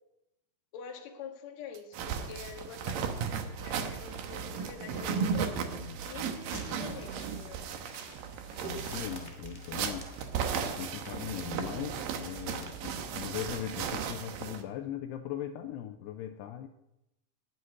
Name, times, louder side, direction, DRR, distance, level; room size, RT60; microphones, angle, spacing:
voice 1, 0.7-5.5 6.0-7.7, left 7 dB, 55° left, 2 dB, 2.1 m, -46 dB
sound 1, 1.7-1.8 2.3-4.7 5.2-7.7 8.1-10.6 11.1-13.5, right 6 dB, 90° right, 2.1 m, -48 dB
sound 2, 1.9-14.6, right 6 dB, 70° right, 2.3 m, -36 dB
voice 2, 5.7-6.0 8.6-10.1 10.6-16.7, left 11 dB, 80° left, 6 dB, 2.5 m, -39 dB
sound 3, 6.2-13.5, left 1 dB, 15° left, 0.6 m, -52 dB
12.0 x 8.0 x 9.6 m, 0.89 s
omnidirectional pair, 5.2 m